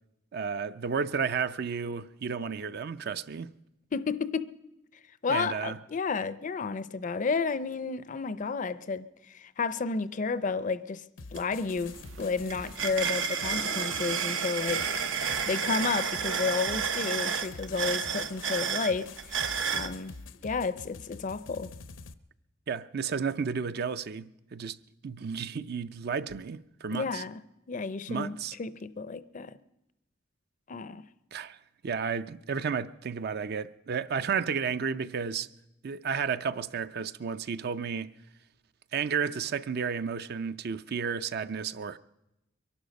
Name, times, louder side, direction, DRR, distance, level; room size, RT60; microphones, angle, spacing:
voice 1, 0.3-3.5 5.3-5.8 22.7-24.8 25.0-27.2 28.1-28.6 31.3-31.6 31.8-35.5 35.8-38.1 38.9-42.0, right 6 dB, 55° right, 0.5 m, -32 dB
voice 2, 3.9-4.5 5.2-11.0 11.3-14.8 15.5-20.1 20.4-21.7 26.9-27.3 27.7-29.6 30.7-31.0, left 4 dB, 40° left, 0.5 m, -32 dB
sound 1, 11.2-22.1, left 4 dB, 80° left, 0.7 m, -47 dB
sound 2, 11.4-11.5 11.8-19.9, right 6 dB, 85° right, 0.9 m, -31 dB
23.0 x 11.5 x 5.2 m
head